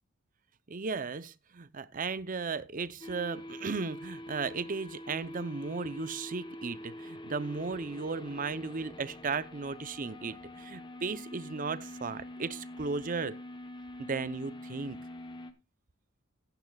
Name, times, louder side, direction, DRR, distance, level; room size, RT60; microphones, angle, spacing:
voice 1, 0.7-13.3 14.0-15.0, right 4 dB, 40° right, 0.6 m, -35 dB
sound 1, 3.0-15.5, left 1 dB, 25° left, 1.0 m, -45 dB
15.0 x 9.9 x 2.3 m
head